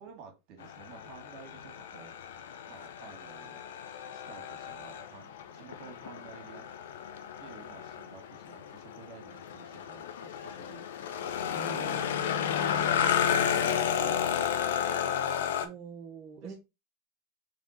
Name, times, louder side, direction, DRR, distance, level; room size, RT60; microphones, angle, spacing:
voice 1, 0.0-3.7 4.1-6.6 7.4-11.3 11.6-12.2 12.8-14.3 14.7-15.3 16.4-16.6, right 6 dB, 55° right, 1.8 m, -52 dB
sound 1, 0.6-15.7, left 8 dB, 75° left, 0.6 m, -32 dB
voice 2, 11.5-12.7 15.6-16.6, right 5 dB, 40° right, 1.2 m, -45 dB
3.6 x 3.3 x 3.9 m
hypercardioid pair, 100°, 0 cm